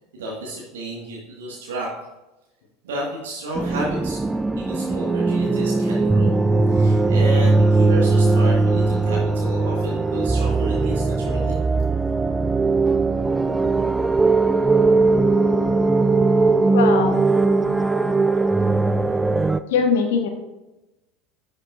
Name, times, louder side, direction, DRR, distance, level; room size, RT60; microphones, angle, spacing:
voice 1, 0.2-1.9 2.8-4.2 4.6-11.6, right 1 dB, 70° right, -4 dB, 1.6 m, -32 dB
sound 1, 3.6-19.6, right 3 dB, 10° right, 0.4 m, -19 dB
voice 2, 16.7-17.2 19.7-20.3, left 5 dB, 65° left, 5 dB, 1.3 m, -20 dB
10.5 x 6.6 x 2.5 m, 1.0 s
figure-of-eight pair, 75°, 0 cm